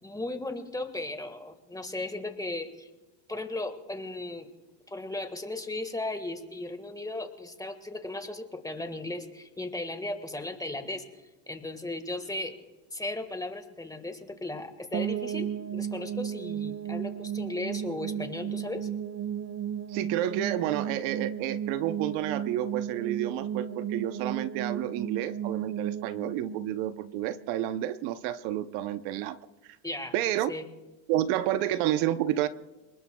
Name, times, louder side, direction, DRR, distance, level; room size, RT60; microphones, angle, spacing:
voice 1, 0.0-2.9 3.3-4.5 4.9-11.0 11.5-12.5 12.9-18.9 29.8-30.1 30.5-30.7, left 2 dB, 5° left, 7 dB, 1.6 m, -36 dB
sound 1, 14.9-27.8, right 9 dB, 30° right, 0.6 m, -34 dB
voice 2, 19.9-29.4 30.1-30.5 31.1-32.5, right 12 dB, 65° right, 11 dB, 0.9 m, -30 dB
30.0 x 20.0 x 2.3 m, 1.1 s
supercardioid pair, 115°, 50 cm